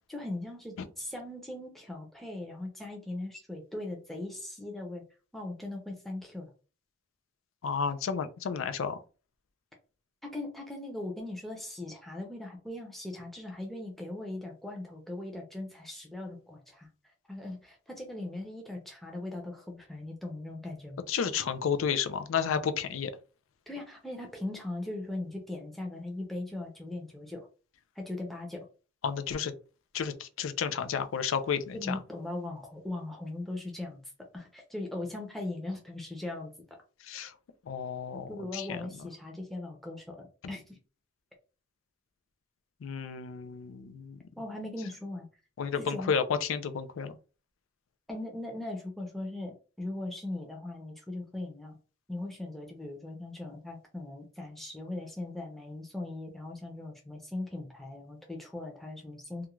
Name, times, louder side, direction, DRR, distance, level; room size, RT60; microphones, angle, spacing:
voice 1, 0.1-5.0 5.3-6.5 10.2-16.9 17.3-21.0 23.7-27.5 28.0-28.6 31.7-34.0 34.3-36.5 38.3-40.8 44.4-45.3 45.7-46.1 48.1-51.8 52.1-59.5, left 2 dB, ahead, 0.5 m, -39 dB
voice 2, 7.6-9.0 21.1-23.1 29.0-29.5 29.9-32.0 37.0-37.3 37.7-38.9 40.4-40.5 42.8-44.2 45.6-47.2, left 6 dB, 90° left, 0.4 m, -32 dB
2.4 x 2.2 x 3.0 m
head